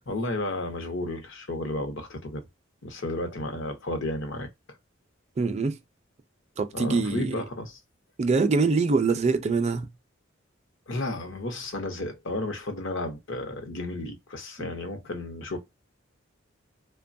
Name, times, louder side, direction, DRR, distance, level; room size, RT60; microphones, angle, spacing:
voice 1, 0.1-2.4 2.8-4.5 6.7-7.8 10.9-15.6, left 2 dB, 65° left, 0.8 m, -32 dB
voice 2, 5.4-5.8 6.6-7.3 8.2-9.9 14.6-14.7, right 4 dB, 35° right, 0.4 m, -24 dB
2.9 x 2.2 x 2.5 m
head